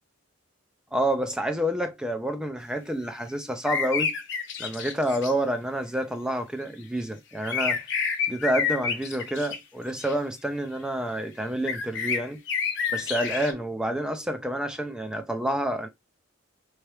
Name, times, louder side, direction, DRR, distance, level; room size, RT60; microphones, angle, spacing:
voice 1, 0.9-4.2 4.6-7.8 8.3-12.4 12.9-15.9, right 1 dB, 5° right, 0.5 m, -28 dB
sound 1, 3.7-5.3 7.4-9.6 10.0-10.1 11.7-13.5, left 6 dB, 55° left, 0.8 m, -29 dB
3.5 x 3.2 x 3.0 m
head